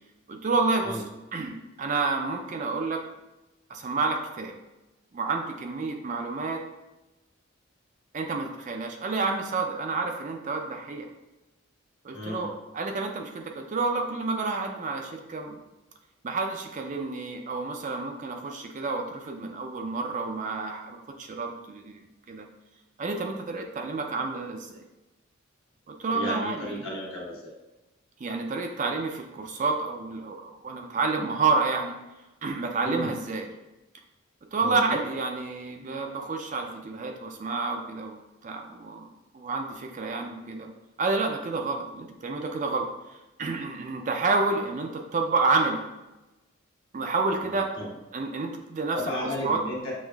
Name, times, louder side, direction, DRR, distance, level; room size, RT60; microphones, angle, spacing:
voice 1, 0.3-1.0 1.3-3.0 3.7-4.6 5.1-6.6 8.1-11.1 12.0-15.6 16.2-22.0 22.3-22.5 23.0-24.8 25.9-26.8 28.2-31.9 32.4-33.5 34.5-39.1 39.3-40.7 41.0-45.8 46.9-47.7 48.1-49.0 49.4-49.6, right 3 dB, 35° right, 3 dB, 0.4 m, -29 dB
voice 2, 12.1-12.5 26.1-27.5 32.8-33.1 34.5-35.0 47.4-47.9 48.9-49.9, equal, 65° left, -4 dB, 1.2 m, -34 dB
6.2 x 2.4 x 2.3 m, 1.0 s
head